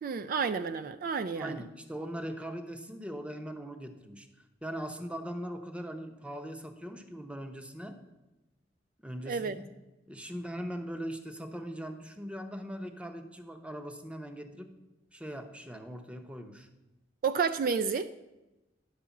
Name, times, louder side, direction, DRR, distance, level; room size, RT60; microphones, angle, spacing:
voice 1, 0.0-1.6 9.3-9.6 17.2-18.2, right 5 dB, 50° right, 0.3 m, -30 dB
voice 2, 1.3-4.3 4.6-8.0 9.0-9.6 10.1-14.7 15.1-16.7, equal, 5° right, 0.7 m, -40 dB
10.5 x 4.7 x 7.0 m
head